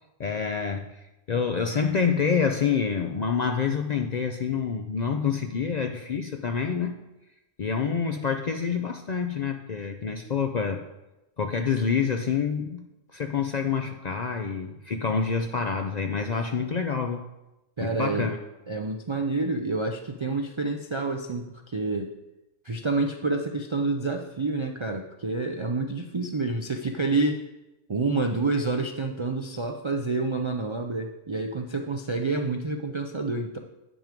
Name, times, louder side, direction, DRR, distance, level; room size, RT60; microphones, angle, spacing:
voice 1, 0.2-0.9 1.3-6.9 7.6-10.8 11.4-12.8 13.1-17.2 17.8-18.4, left 6 dB, 55° left, 5 dB, 0.5 m, -27 dB
voice 2, 17.8-18.3 18.7-22.1 22.6-27.4 27.9-33.6, right 3 dB, 45° right, 3 dB, 0.3 m, -28 dB
9.0 x 6.2 x 5.1 m, 0.97 s
omnidirectional pair, 1.2 m